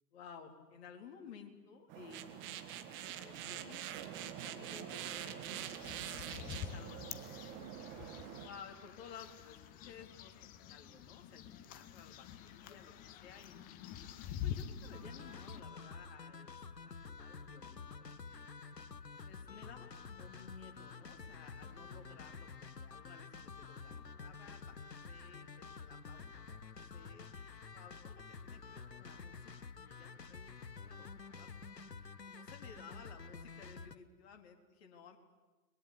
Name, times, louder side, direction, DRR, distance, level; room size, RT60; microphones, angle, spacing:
voice 1, 0.1-2.9 3.1-3.9 4.1-7.7 8.4-13.6 14.3-18.4 19.2-31.5 31.9-35.2, left 6 dB, 40° left, 4 dB, 3.8 m, -56 dB
sound 1, 1.9-8.5, right 10 dB, 25° right, 1.9 m, -45 dB
sound 2, 5.6-15.6, left 10 dB, 15° left, 1.0 m, -47 dB
sound 3, 14.9-34.0, left 4 dB, 80° left, 1.3 m, -50 dB
30.0 x 22.5 x 8.5 m, 1.2 s
figure-of-eight pair, 120°, 48 cm